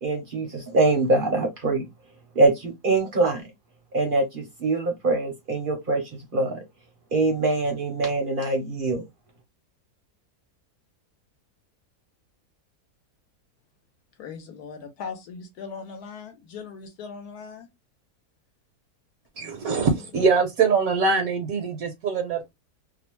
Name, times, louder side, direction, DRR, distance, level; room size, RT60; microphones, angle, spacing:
voice 1, 0.0-1.9 2.3-3.4 3.9-6.0 6.3-6.6 7.1-9.0, right 2 dB, 45° right, 0.7 m, -23 dB
voice 2, 14.2-17.7 19.4-19.5, left 5 dB, 75° left, 1.1 m, -39 dB
voice 3, 19.3-22.5, right 5 dB, 70° right, 1.0 m, -23 dB
2.7 x 2.0 x 3.0 m
omnidirectional pair, 1.7 m